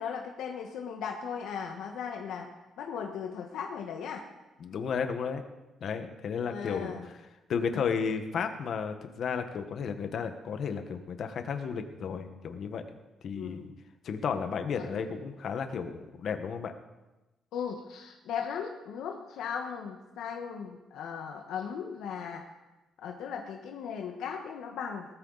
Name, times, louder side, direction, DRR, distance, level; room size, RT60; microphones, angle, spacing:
voice 1, 0.0-2.5 2.8-4.2 6.4-7.0 13.3-13.6 14.8-15.1 17.5-22.5 23.0-25.1, left 7 dB, 80° left, 2 dB, 1.4 m, -37 dB
voice 2, 4.6-5.4 5.8-7.1 7.5-12.8 13.2-13.7 14.0-16.7, left 6 dB, 55° left, 7 dB, 1.4 m, -33 dB
19.0 x 13.5 x 4.1 m, 1.1 s
cardioid pair, 140°, 0 cm